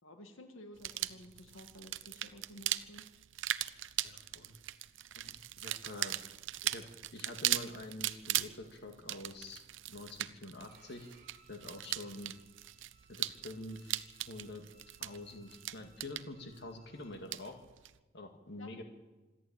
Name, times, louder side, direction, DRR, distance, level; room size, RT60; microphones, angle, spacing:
voice 1, 0.0-3.1 18.6-18.8, left 1 dB, 80° left, 5 dB, 2.0 m, -53 dB
sound 1, 0.8-18.0, right 13 dB, 70° right, 0.7 m, -39 dB
voice 2, 4.0-4.6 5.1-6.2 6.6-6.8 7.1-9.6 9.9-11.1 11.5-12.3 13.1-14.0 14.3-14.6 15.0-17.5 18.1-18.8, left 1 dB, 55° left, 4 dB, 2.0 m, -46 dB
Bowed string instrument, 10.6-17.1, right 3 dB, 50° right, 5.3 m, -66 dB
26.0 x 11.5 x 8.8 m, 1.2 s
head